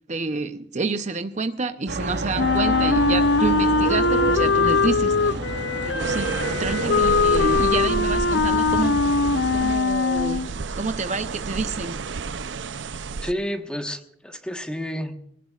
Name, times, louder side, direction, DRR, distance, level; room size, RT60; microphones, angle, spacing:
voice 1, 0.1-5.4 5.8-6.3 6.6-9.1 9.5-12.0, right 3 dB, 40° right, 9 dB, 0.7 m, -28 dB
sound 1, 1.9-9.8, right 3 dB, 65° right, 1.0 m, -29 dB
Wind instrument woodwind instrument, 2.4-10.5, left 4 dB, 80° left, 0.6 m, -21 dB
sound 2, 6.0-13.3, right 4 dB, 85° right, 0.6 m, -32 dB
voice 2, 13.2-15.2, equal, 5° left, 5 dB, 1.3 m, -30 dB
23.0 x 18.0 x 2.4 m, 0.70 s
head